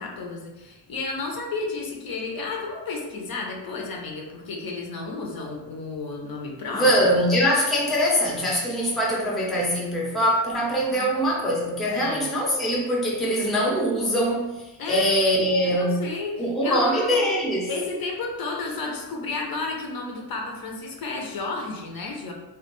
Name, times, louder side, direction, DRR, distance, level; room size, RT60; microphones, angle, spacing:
voice 1, 0.0-7.1 10.9-11.1 11.9-12.3 14.8-15.1 15.6-17.3 17.7-22.3, left 3 dB, 55° left, 1 dB, 0.5 m, -32 dB
voice 2, 6.8-14.5 14.9-16.0 16.4-17.7, equal, ahead, -4 dB, 0.4 m, -23 dB
2.3 x 2.1 x 2.9 m, 1.1 s
wide cardioid pair, 135°, 44 cm